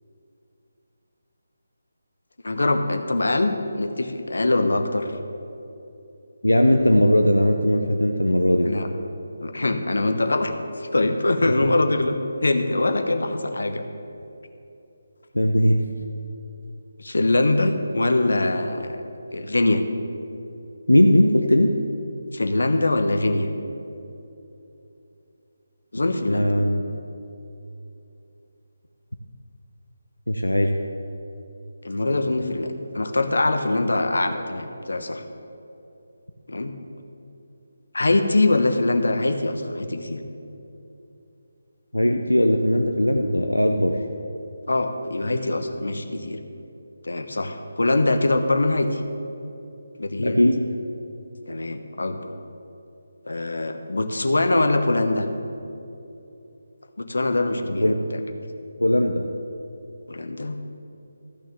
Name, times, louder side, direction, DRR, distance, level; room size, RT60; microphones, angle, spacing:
voice 1, 2.4-5.1 8.6-8.9 9.4-12.2 12.4-13.8 17.0-18.9 19.3-19.8 22.3-23.5 25.9-26.5 31.8-35.2 36.5-36.7 37.9-40.2 44.7-46.4 47.0-49.0 50.0-50.4 51.5-52.2 53.3-55.3 57.0-58.2 60.1-60.6, left 2 dB, 70° left, 7 dB, 1.0 m, -23 dB
voice 2, 6.4-8.7 15.3-15.8 20.9-21.7 26.3-26.8 30.3-30.7 41.9-44.0 50.2-50.6 57.7-58.0 58.8-59.3, left 1 dB, 85° left, 4 dB, 0.7 m, -19 dB
13.5 x 6.4 x 7.0 m, 2.8 s
figure-of-eight pair, 150°, 0 cm